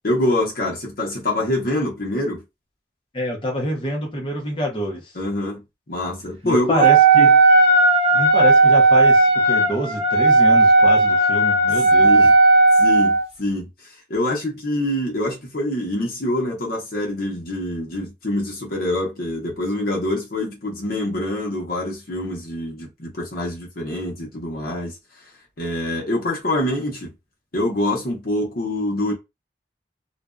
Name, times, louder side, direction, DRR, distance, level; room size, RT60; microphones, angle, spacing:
voice 1, 0.0-2.4 5.1-6.8 7.1-7.3 12.0-12.3 12.8-13.7 14.1-25.0 25.6-27.1 27.5-29.1, left 1 dB, 55° left, 0.9 m, -25 dB
voice 2, 3.1-5.1 6.4-7.3 8.1-12.1, equal, 30° left, 0.7 m, -26 dB
Wind instrument woodwind instrument, 6.8-13.3, right 3 dB, 35° right, 0.6 m, -14 dB
2.5 x 2.2 x 2.3 m
head